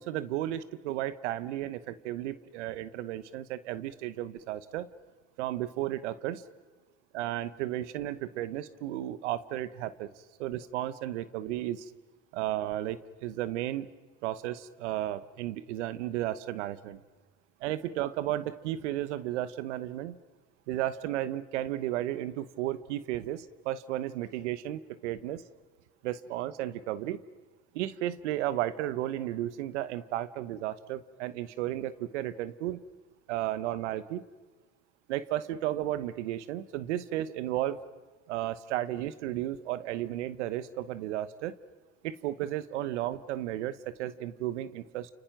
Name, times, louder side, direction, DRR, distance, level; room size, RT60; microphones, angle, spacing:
voice 1, 0.0-4.9 5.4-6.4 7.1-10.1 10.4-11.9 12.3-13.9 14.2-17.0 17.6-20.2 20.7-25.4 26.0-27.2 27.7-32.8 33.3-34.2 35.1-37.8 38.3-41.5 42.0-45.1, right 13 dB, 85° right, 16 dB, 1.1 m, -33 dB
29.5 x 29.0 x 5.9 m, 1.3 s
hypercardioid pair, 65°, 34 cm